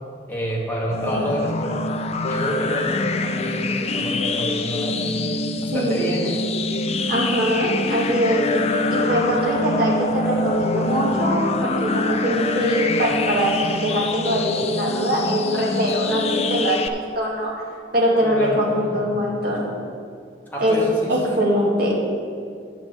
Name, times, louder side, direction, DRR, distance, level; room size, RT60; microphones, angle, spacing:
voice 1, 0.3-1.8 2.3-5.0 5.7-6.4 18.2-19.2 20.5-21.4, equal, 10° left, -5 dB, 1.9 m, -28 dB
sound 1, 0.9-16.9, left 2 dB, 35° left, 0.4 m, -24 dB
voice 2, 5.7-6.1 7.1-8.5 8.9-17.5 17.9-19.7 20.6-22.0, equal, 50° right, -5 dB, 2.1 m, -22 dB
8.9 x 6.2 x 7.4 m, 2.3 s
head